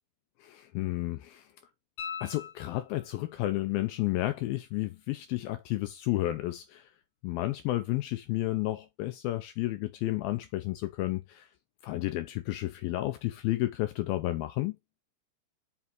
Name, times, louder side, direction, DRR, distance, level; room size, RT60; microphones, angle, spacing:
voice 1, 0.4-1.5 2.2-6.9 7.2-11.5 11.8-14.8, left 17 dB, 85° left, 2.2 m, -32 dB
sound 1, 2.0-3.3 6.1-6.2, left 7 dB, 45° left, 3.4 m, -41 dB
6.0 x 5.5 x 4.5 m
omnidirectional pair, 4.9 m